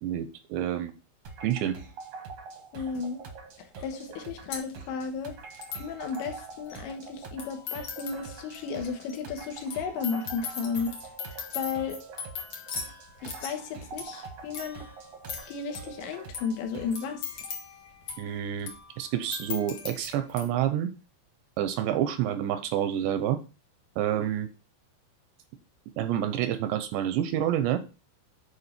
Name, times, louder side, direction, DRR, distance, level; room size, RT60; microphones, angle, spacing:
voice 1, 0.0-0.9 1.4-1.8 18.2-18.7 19.0-20.9 21.6-23.4 24.0-24.5 26.0-27.8, right 11 dB, 80° right, 9 dB, 2.7 m, -28 dB
sound 1, 1.2-17.1, right 4 dB, 65° right, 1.6 m, -45 dB
voice 2, 2.7-3.2 3.6-5.3 5.8-11.0 11.3-12.0 13.2-14.8 15.5-17.4, left 5 dB, 75° left, 5 dB, 3.4 m, -34 dB
sound 2, 2.9-3.0 3.8-3.9 4.1-20.4, left 6 dB, 60° left, 1.7 m, -41 dB
9.7 x 4.6 x 4.2 m, 0.33 s
omnidirectional pair, 5.4 m